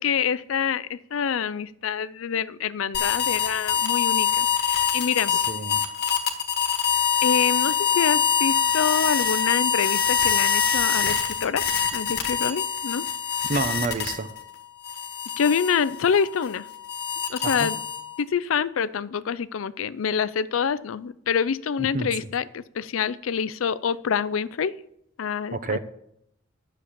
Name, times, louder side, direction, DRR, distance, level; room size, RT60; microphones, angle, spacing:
voice 1, 0.0-5.4 7.2-11.6 11.9-13.0 15.4-16.7 17.3-17.8 18.2-24.7 25.2-25.8, left 7 dB, 85° left, 17 dB, 0.4 m, -26 dB
sound 1, 2.9-14.4 14.8-18.2, left 8 dB, 50° left, 1.3 m, -24 dB
voice 2, 5.3-5.8 13.5-14.3 17.4-17.7 21.8-22.1 25.5-25.8, right 3 dB, 45° right, 11 dB, 0.8 m, -28 dB
10.0 x 6.6 x 7.3 m, 0.76 s
head